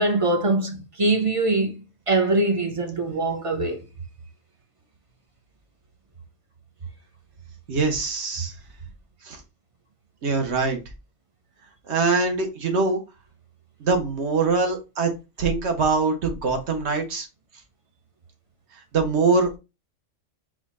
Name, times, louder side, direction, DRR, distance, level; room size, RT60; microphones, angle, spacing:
voice 1, 0.0-3.8, right 2 dB, 35° right, 0.6 m, -23 dB
voice 2, 7.7-8.5 9.2-9.4 10.2-10.8 11.9-13.0 13.8-15.1 15.4-17.3 18.9-19.6, right 4 dB, 65° right, 1.2 m, -23 dB
4.2 x 2.4 x 4.1 m
omnidirectional pair, 1.3 m